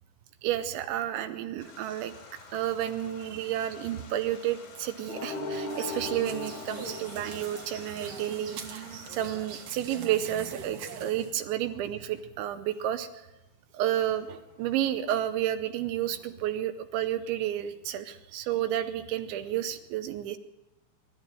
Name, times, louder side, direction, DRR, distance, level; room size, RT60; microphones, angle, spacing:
voice 1, 0.4-2.1 2.5-13.1 13.7-20.4, right 11 dB, 75° right, 10 dB, 2.9 m, -31 dB
sound 1, 1.6-10.5 11.0-12.2 12.7-12.9 13.7-16.6 17.2-17.8 18.1-19.7, left 4 dB, 80° left, 7.1 m, -52 dB
sound 2, 5.1-8.1, left 2 dB, 55° left, 3.9 m, -37 dB
sound 3, 5.7-11.3, right 6 dB, 60° right, 2.5 m, -43 dB
24.0 x 13.5 x 9.1 m, 1.0 s
omnidirectional pair, 5.9 m